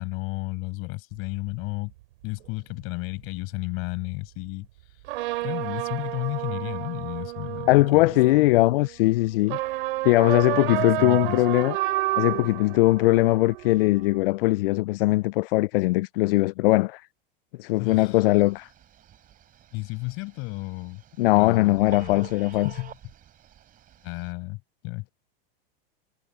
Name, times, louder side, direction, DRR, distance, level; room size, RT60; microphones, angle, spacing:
voice 1, 0.0-1.9 2.2-4.7 5.4-8.6 10.7-11.4 17.8-18.2 19.7-21.0 21.3-22.3 22.6-23.0 24.0-25.1, left 26 dB, 45° left, 6.6 m, -33 dB
sound 1, 1.2-1.7 2.8-2.9 5.0-9.0 9.4-14.2, right 17 dB, 70° right, 3.5 m, -31 dB
voice 2, 7.7-9.6 10.0-11.8 12.2-17.0 17.6-18.7 21.2-22.7, left 19 dB, 70° left, 0.4 m, -20 dB
Telephone, 17.9-24.3, right 11 dB, 30° right, 3.8 m, -49 dB
supercardioid pair, 135°, 30 cm